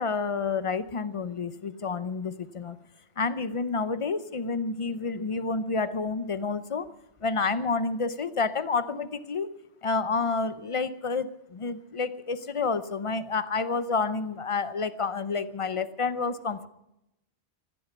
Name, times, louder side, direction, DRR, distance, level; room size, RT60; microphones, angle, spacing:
voice 1, 0.0-2.8 3.2-6.9 7.2-9.5 9.8-16.7, left 4 dB, 35° left, 14 dB, 0.6 m, -29 dB
15.5 x 11.0 x 8.0 m, 0.90 s
omnidirectional pair, 1.2 m